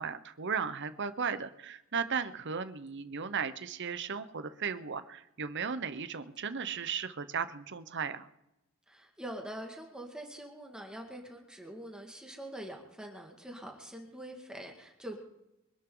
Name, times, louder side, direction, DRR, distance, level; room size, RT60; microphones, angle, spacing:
voice 1, 0.0-8.3, right 6 dB, 55° right, 11 dB, 0.9 m, -36 dB
voice 2, 8.9-15.2, right 1 dB, 5° right, 1 dB, 2.0 m, -44 dB
24.5 x 12.0 x 3.9 m, 0.89 s
head